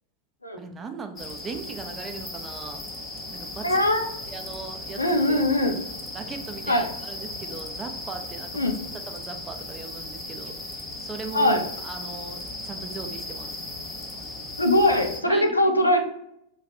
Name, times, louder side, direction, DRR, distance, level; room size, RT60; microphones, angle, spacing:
voice 1, 0.6-2.9 3.3-3.8 4.3-5.0 5.3-5.4 6.1-13.6 15.3-15.7, right 4 dB, 20° right, 5 dB, 0.4 m, -39 dB
sound 1, 1.2-15.2, left 2 dB, 15° left, 0.6 m, -37 dB
voice 2, 3.6-4.0 5.0-5.8 6.7-6.9 8.5-8.8 11.3-11.6 14.6-16.0, left 1 dB, 85° left, 4 dB, 0.4 m, -21 dB
2.6 x 2.3 x 3.4 m, 0.78 s
figure-of-eight pair, 90°, 0 cm